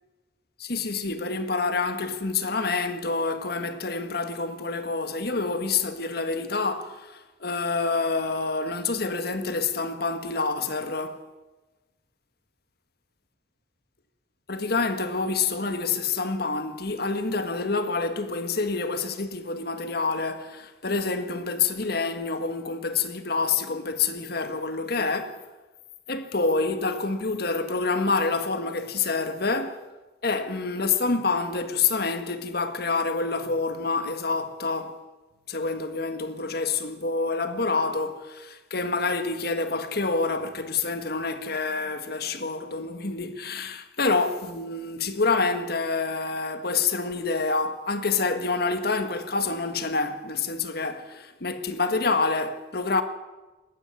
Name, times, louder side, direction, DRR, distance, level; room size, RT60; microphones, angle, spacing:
voice 1, 0.6-11.2 14.5-25.4 26.1-29.8 30.2-35.0 35.5-53.0, left 4 dB, 60° left, 1.7 m, -27 dB
20.5 x 15.5 x 9.8 m
head